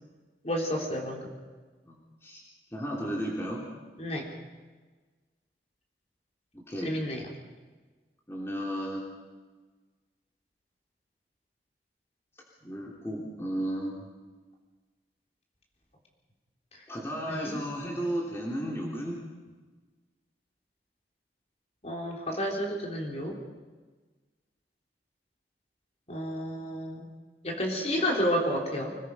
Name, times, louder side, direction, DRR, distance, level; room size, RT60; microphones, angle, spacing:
voice 1, 0.4-1.3 4.0-4.3 6.8-7.2 17.3-17.6 21.8-23.4 26.1-27.1 27.4-29.0, equal, 35° left, 0 dB, 3.9 m, -31 dB
voice 2, 1.8-2.4 2.7-3.6 6.5-6.9 8.3-9.0 12.6-14.1 16.9-19.2, equal, 15° left, -3 dB, 3.2 m, -34 dB
26.0 x 20.0 x 5.6 m, 1.3 s
head